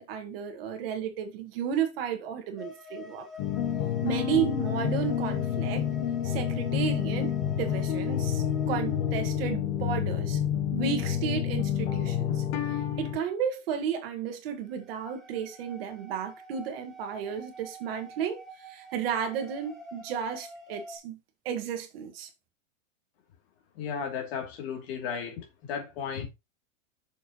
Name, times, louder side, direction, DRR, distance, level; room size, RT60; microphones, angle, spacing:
voice 1, 0.0-3.3 4.0-5.8 6.2-10.4 10.7-12.4 13.0-21.2 21.5-22.3, right 8 dB, 45° right, 1.9 m, -33 dB
sound 1, 2.6-9.5 14.7-21.0, left 3 dB, ahead, 1.2 m, -46 dB
sound 2, 3.4-13.2, left 10 dB, 25° left, 0.9 m, -29 dB
voice 2, 23.7-26.3, left 7 dB, 50° left, 3.0 m, -34 dB
7.8 x 6.8 x 3.0 m
supercardioid pair, 175°, 39 cm